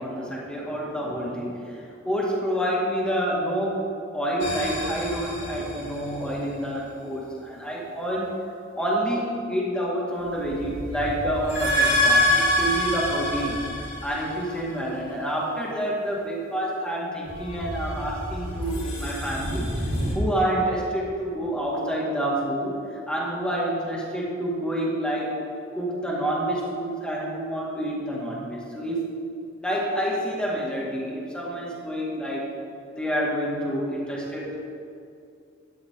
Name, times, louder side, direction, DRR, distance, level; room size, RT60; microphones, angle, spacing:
voice 1, 0.0-8.5 8.7-13.6 14.0-19.7 20.1-25.4 25.7-29.0 29.6-32.5 33.0-34.6, right 1 dB, 5° left, -4 dB, 2.1 m, -28 dB
sound 1, 4.4-6.3 10.2-14.8 17.3-20.1, left 1 dB, 65° left, 3.0 m, -27 dB
13.0 x 9.6 x 3.8 m, 2.5 s
head